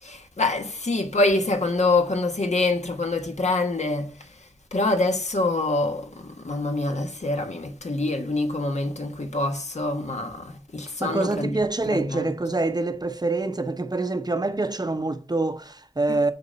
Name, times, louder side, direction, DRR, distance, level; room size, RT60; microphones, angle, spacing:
voice 1, 0.0-12.4 16.1-16.2, left 2 dB, 75° left, 1.2 m, -26 dB
voice 2, 11.0-16.3, right 2 dB, 35° right, 0.7 m, -26 dB
6.7 x 4.0 x 5.5 m
wide cardioid pair, 60°, 12 cm